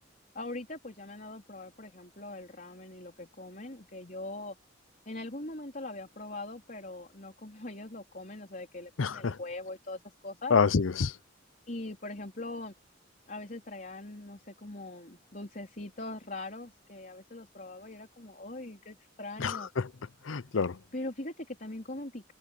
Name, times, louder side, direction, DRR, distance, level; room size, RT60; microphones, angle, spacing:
voice 1, 0.3-4.6 5.1-10.6 11.7-12.7 13.3-19.7 20.9-22.3, left 2 dB, 45° left, 3.9 m, -41 dB
voice 2, 9.0-9.4 10.5-11.1 19.4-19.9 20.3-20.8, left 5 dB, 85° left, 0.6 m, -27 dB
head